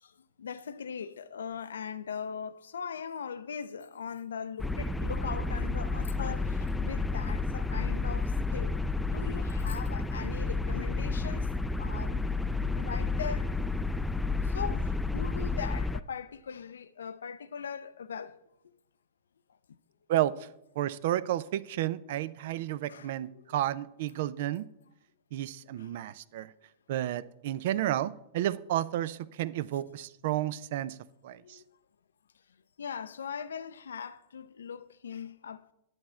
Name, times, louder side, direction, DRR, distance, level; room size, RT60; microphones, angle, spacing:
voice 1, 0.0-11.5 11.8-12.2 12.8-13.6 14.4-18.4 22.9-23.5 25.8-25.9 27.8-27.9 31.3-31.6 32.8-35.7, left 7 dB, 80° left, 0.4 m, -40 dB
sound 1, 4.6-16.0, left 3 dB, 5° left, 0.4 m, -31 dB
voice 2, 20.1-20.5 20.8-24.7 25.3-26.5 26.9-31.0 31.2-31.6, right 13 dB, 60° right, 0.5 m, -31 dB
10.5 x 8.0 x 4.3 m
hypercardioid pair, 105°, 0 cm